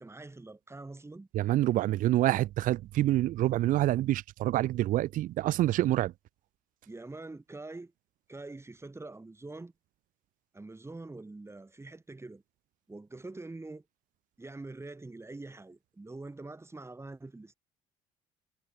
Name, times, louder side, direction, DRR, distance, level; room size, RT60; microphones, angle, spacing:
voice 1, 0.0-1.3 6.9-7.9 8.3-9.7 10.5-12.4 12.9-13.9 14.4-17.5, right 2 dB, 15° right, 4.1 m, -44 dB
voice 2, 1.4-6.1, right 14 dB, 60° right, 0.6 m, -27 dB
supercardioid pair, 70°, 15 cm